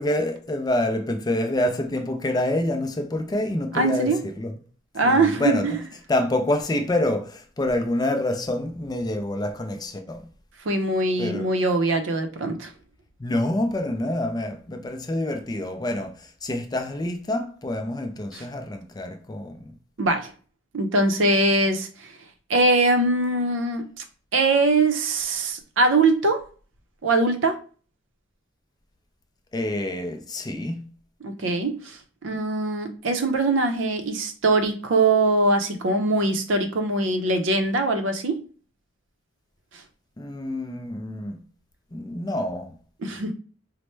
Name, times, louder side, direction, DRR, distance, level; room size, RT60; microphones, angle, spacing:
voice 1, 0.0-4.6 5.0-5.7 6.1-10.3 11.2-11.5 13.2-19.7 29.5-30.8 40.2-41.4 41.9-42.7, left 1 dB, 20° left, 0.4 m, -27 dB
voice 2, 3.7-4.2 4.9-5.6 10.7-12.7 20.0-20.3 20.7-22.1 22.5-23.8 24.3-26.4 27.0-27.6 31.2-32.0 32.2-38.5 43.0-43.3, right 2 dB, 70° right, 0.6 m, -22 dB
4.2 x 2.1 x 3.2 m
head